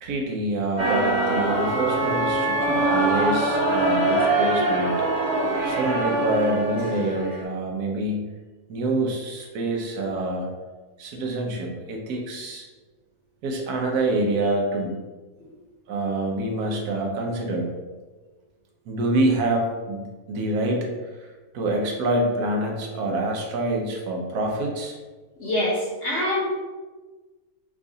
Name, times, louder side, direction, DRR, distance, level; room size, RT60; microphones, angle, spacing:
voice 1, 0.0-5.0 5.6-8.3 8.7-10.5 11.0-12.7 13.4-15.0 15.9-17.7 18.9-20.9 21.5-25.0, right 2 dB, 75° right, 1 dB, 1.2 m, -26 dB
sound 1, 0.8-7.4, right 2 dB, 35° right, 0.8 m, -23 dB
voice 2, 25.4-26.5, left 1 dB, 55° left, -6 dB, 1.0 m, -25 dB
3.7 x 2.4 x 3.8 m, 1.3 s
omnidirectional pair, 1.7 m